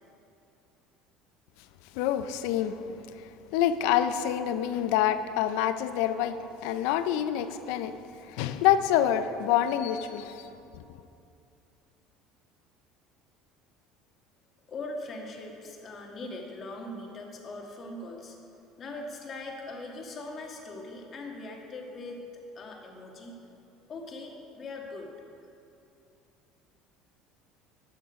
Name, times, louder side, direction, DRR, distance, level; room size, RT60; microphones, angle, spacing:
voice 1, 2.0-3.0 3.5-7.9 8.4-10.4, left 10 dB, 80° left, 11 dB, 0.5 m, -26 dB
voice 2, 14.7-18.4 18.8-23.4 23.9-25.1, left 2 dB, 40° left, 1 dB, 1.7 m, -41 dB
11.5 x 6.1 x 5.2 m, 2.8 s
supercardioid pair, 95°, 0 cm